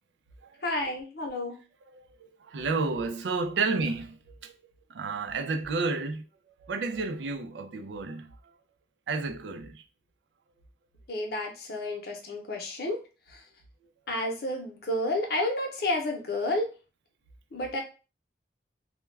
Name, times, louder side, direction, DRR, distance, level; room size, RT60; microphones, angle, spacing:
voice 1, 0.6-1.6 11.1-13.0 13.3-13.4 14.1-16.7 17.5-17.8, left 1 dB, 60° left, 0.7 m, -31 dB
voice 2, 1.9-4.5 4.9-6.2 6.6-8.3 9.1-9.8, right 4 dB, 85° right, 0.4 m, -31 dB
2.2 x 2.1 x 3.2 m
head